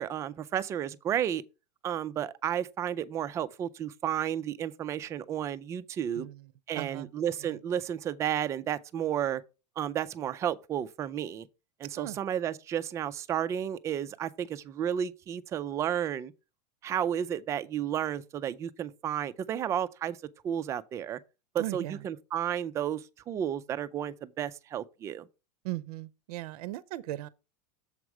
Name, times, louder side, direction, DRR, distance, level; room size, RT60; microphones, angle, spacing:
voice 1, 0.0-1.4 1.8-6.3 6.7-9.4 9.8-11.5 11.8-16.3 16.8-20.2 20.4-21.2 21.5-25.3, right 10 dB, 15° right, 0.3 m, -32 dB
voice 2, 6.1-7.1 7.4-7.6 12.0-12.2 21.6-22.1 25.6-27.3, right 16 dB, 65° right, 0.6 m, -38 dB
7.1 x 4.6 x 6.0 m
supercardioid pair, 160°, 21 cm